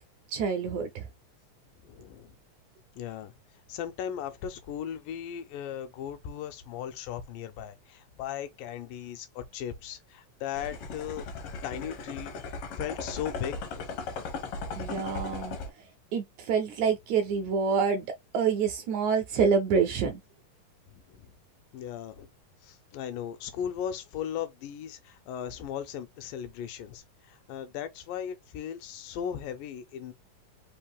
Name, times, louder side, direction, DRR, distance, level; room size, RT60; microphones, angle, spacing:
voice 1, 0.3-1.0 14.7-15.6 16.1-18.0 18.3-20.2, right 6 dB, 80° right, 1.7 m, -27 dB
voice 2, 1.8-2.4 3.0-3.3 3.7-11.3 11.6-12.3 12.8-14.0 20.9-21.3 21.7-22.3 22.6-30.1, left 9 dB, 85° left, 2.4 m, -37 dB
sound 1, 10.5-15.7, left 4 dB, 70° left, 1.4 m, -37 dB
5.3 x 2.4 x 3.5 m
omnidirectional pair, 3.9 m